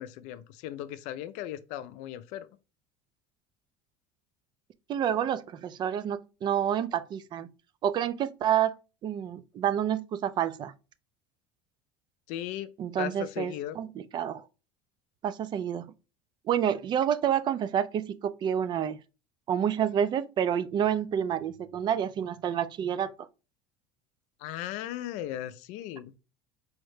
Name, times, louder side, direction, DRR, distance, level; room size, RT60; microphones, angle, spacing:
voice 1, 0.0-2.5 12.3-12.7 13.0-13.8 24.4-26.1, left 12 dB, 65° left, 0.4 m, -37 dB
voice 2, 4.9-7.5 7.8-8.7 9.0-10.7 12.8-14.4 15.2-15.9 16.5-19.0 19.5-23.1, right 9 dB, 35° right, 0.4 m, -28 dB
4.7 x 2.1 x 3.1 m
supercardioid pair, 130°, 14 cm